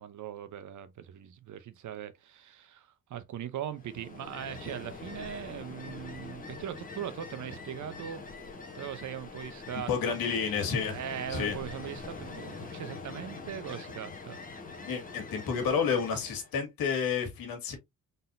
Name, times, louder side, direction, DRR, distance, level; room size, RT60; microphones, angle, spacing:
voice 1, 0.0-8.2 8.7-10.2 10.9-14.4, right 10 dB, 55° right, 0.8 m, -40 dB
Ocean, 3.7-16.5, left 4 dB, 25° left, 1.2 m, -44 dB
voice 2, 9.7-11.0 11.3-11.6 14.8-17.8, left 6 dB, 75° left, 2.0 m, -30 dB
4.0 x 3.9 x 2.6 m
cardioid pair, 105°, 36 cm